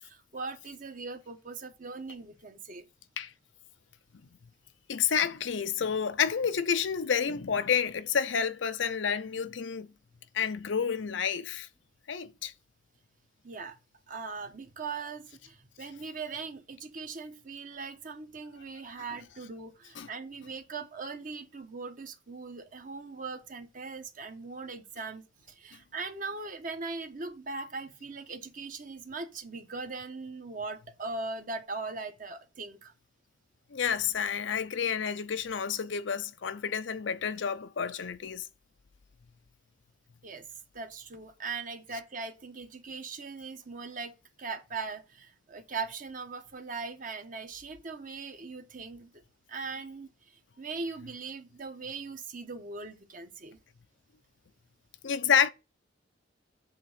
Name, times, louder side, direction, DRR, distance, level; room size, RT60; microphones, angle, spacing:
voice 1, 0.0-2.9 13.4-13.8 14.1-32.9 40.2-40.5 40.7-49.2 49.5-53.6, right 4 dB, 45° right, 1.1 m, -40 dB
voice 2, 4.9-9.9 10.3-11.7 12.1-12.5 20.0-20.1 33.7-38.5 55.0-55.5, left 7 dB, 90° left, 0.6 m, -29 dB
7.7 x 3.5 x 6.5 m
head